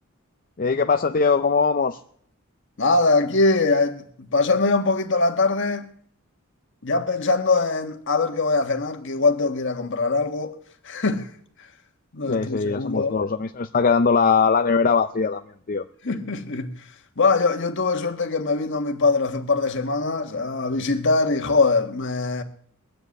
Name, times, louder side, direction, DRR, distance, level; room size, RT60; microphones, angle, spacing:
voice 1, 0.6-2.0 12.2-15.8, left 5 dB, 40° left, 0.5 m, -21 dB
voice 2, 2.8-5.9 6.8-10.6 10.8-11.3 12.1-13.2 16.0-16.8 17.2-22.4, left 3 dB, 60° left, 1.5 m, -22 dB
21.5 x 7.7 x 8.3 m
head